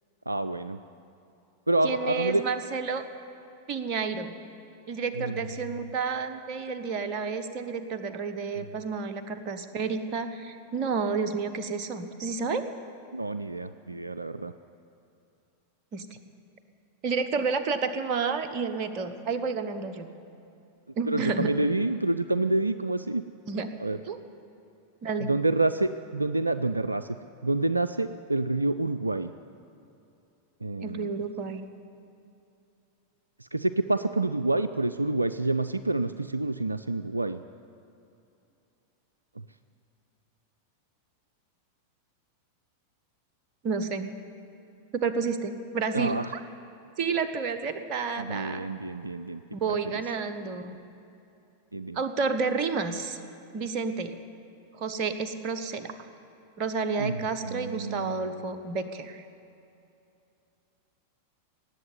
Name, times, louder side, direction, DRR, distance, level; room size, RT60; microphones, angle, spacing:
voice 1, 0.3-0.8 1.7-2.4 5.2-5.3 8.6-8.7 13.1-14.5 21.1-23.2 23.8-24.0 25.2-27.1 27.4-29.3 30.6-31.1 33.5-37.4 45.9-46.3 48.2-49.4 51.7-52.0 57.0-57.2 57.4-58.4, right 2 dB, 85° right, 12 dB, 0.3 m, -28 dB
voice 2, 1.8-3.0 3.7-4.3 4.9-12.6 15.9-16.1 17.0-20.1 21.0-21.5 23.4-23.7 24.1-24.2 25.0-25.3 30.8-31.6 43.6-44.1 44.9-46.4 47.0-48.7 49.5-50.8 51.9-53.2 53.5-54.2 54.8-55.9 56.6-59.2, right 5 dB, 40° right, 8 dB, 1.0 m, -30 dB
18.5 x 8.0 x 9.5 m, 2.7 s
figure-of-eight pair, 90°, 0 cm